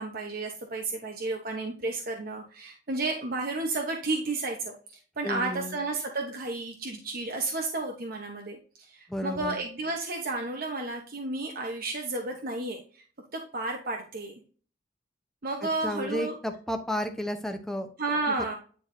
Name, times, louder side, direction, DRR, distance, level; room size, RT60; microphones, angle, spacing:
voice 1, 0.0-4.7 5.2-13.0 13.3-14.3 15.4-16.3 18.0-18.5, right 3 dB, 50° right, 1 dB, 1.0 m, -32 dB
voice 2, 5.2-5.8 9.1-9.6 15.8-17.9, left 1 dB, 5° left, 4 dB, 0.9 m, -32 dB
9.5 x 4.6 x 2.7 m, 0.40 s
head